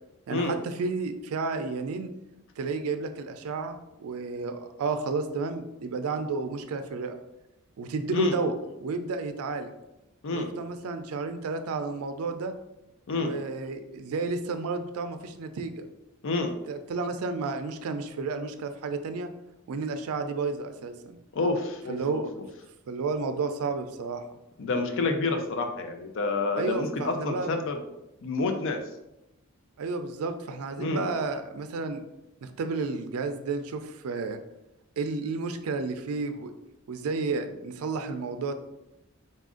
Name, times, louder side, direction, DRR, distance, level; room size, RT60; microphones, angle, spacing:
voice 1, 0.3-2.1 2.6-7.2 7.8-8.5 8.8-9.7 10.3-12.5 13.2-15.9 16.7-19.3 19.7-20.9 21.9-22.3 22.9-24.2 26.6-27.5 29.8-32.0 32.4-34.4 35.0-36.5 36.9-38.5, right 4 dB, 90° right, 8 dB, 0.4 m, -31 dB
voice 2, 21.3-22.2 24.6-27.8 28.2-28.8 30.8-31.0, left 3 dB, 65° left, 5 dB, 0.5 m, -28 dB
4.0 x 2.5 x 3.7 m, 0.91 s
head